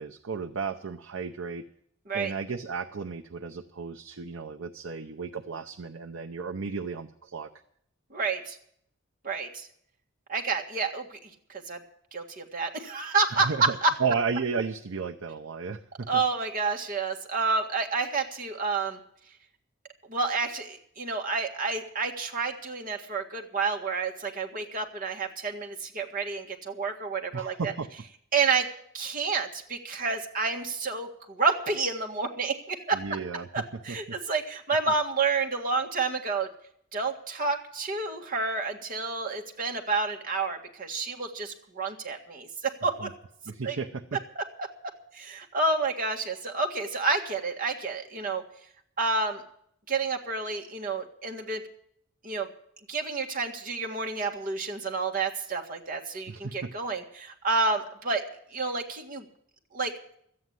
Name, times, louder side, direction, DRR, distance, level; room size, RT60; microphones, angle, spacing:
voice 1, 0.0-1.6 2.1-7.5 13.3-16.2 27.3-27.9 32.9-34.2 43.0-43.1 43.5-44.2 56.3-56.7, right 5 dB, 80° right, 4 dB, 0.7 m, -34 dB
voice 2, 8.1-8.6 9.2-9.7 10.3-11.8 12.1-13.9 16.1-19.0 20.1-27.7 28.3-28.7 28.9-33.0 33.5-36.5 36.9-43.1 43.6-43.8 44.4-44.7 45.1-48.4 49.0-49.4 49.9-51.6 52.2-52.5 52.9-58.3 58.5-59.3 59.7-59.9, right 4 dB, 45° right, 3 dB, 1.8 m, -29 dB
13.5 x 8.7 x 9.4 m, 0.67 s
head